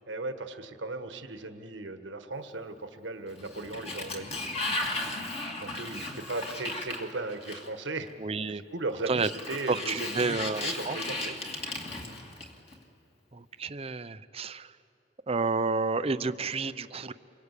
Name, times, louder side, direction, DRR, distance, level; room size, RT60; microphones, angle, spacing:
voice 1, 0.1-4.9 5.6-8.1 8.5-11.4, right 2 dB, 90° right, 7 dB, 1.6 m, -37 dB
Sliding door, 3.3-7.9 9.0-12.7, left 2 dB, 35° left, 2.6 m, -36 dB
voice 2, 8.2-8.6 9.1-9.3 9.7-11.0 13.3-14.7 15.3-17.1, right 4 dB, 35° right, 13 dB, 0.6 m, -30 dB
29.0 x 24.0 x 8.4 m, 2.7 s
head